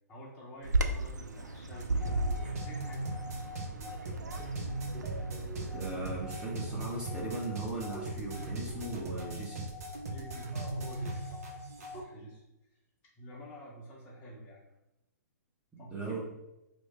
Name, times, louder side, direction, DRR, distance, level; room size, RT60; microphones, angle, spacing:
voice 1, 0.1-4.1 4.4-4.5 10.0-11.4 11.9-12.4 13.2-14.6 15.8-16.2, right 1 dB, 20° left, -6 dB, 0.7 m, -48 dB
Bird vocalization bird call bird song, 0.6-6.3, right 2 dB, 85° right, 0.4 m, -35 dB
sound 1, 1.7-12.0, right 1 dB, 55° right, 0.8 m, -39 dB
voice 2, 5.7-9.7 15.9-16.2, right 2 dB, 10° right, -5 dB, 0.8 m, -38 dB
3.1 x 2.1 x 4.2 m, 0.91 s
figure-of-eight pair, 120°, 9 cm